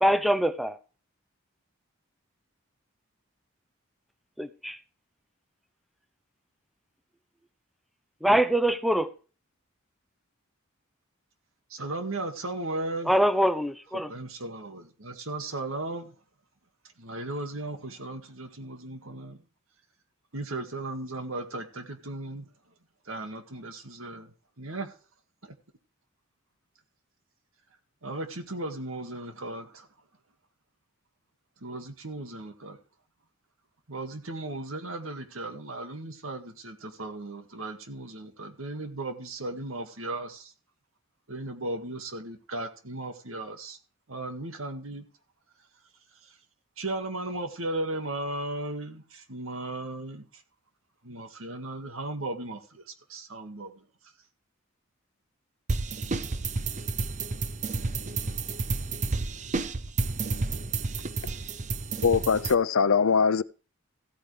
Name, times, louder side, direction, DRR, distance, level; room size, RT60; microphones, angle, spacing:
voice 1, 0.0-0.8 4.4-4.8 8.2-9.1 13.1-14.1, equal, ahead, 0.6 m, -24 dB
voice 2, 11.7-13.1 13.9-16.1 17.0-19.4 20.3-22.5 23.1-24.9 25.4-25.6 28.0-29.9 31.6-32.8 33.9-40.5 41.3-43.8 44.1-45.1 46.2-46.4 46.8-50.4 51.0-53.8, right 2 dB, 80° right, 1.9 m, -36 dB
sound 1, 55.7-62.5, right 3 dB, 35° right, 0.7 m, -31 dB
voice 3, 62.0-63.4, left 5 dB, 90° left, 0.6 m, -22 dB
15.0 x 9.1 x 3.3 m
head